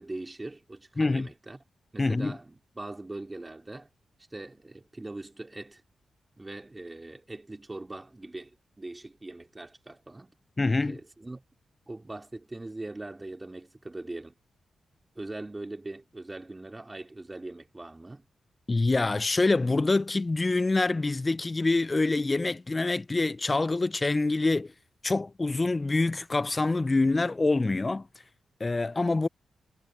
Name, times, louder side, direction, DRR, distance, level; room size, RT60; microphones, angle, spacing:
voice 1, 0.0-1.6 1.9-3.9 4.3-5.8 6.4-10.3 10.9-11.4 11.9-14.4 15.2-18.2, right 2 dB, 25° right, 2.5 m, -41 dB
voice 2, 1.0-1.3 2.0-2.4 10.6-11.0 18.7-24.7 25.0-28.1 28.6-29.3, left 3 dB, 35° left, 0.4 m, -26 dB
supercardioid pair, 45°, 0 cm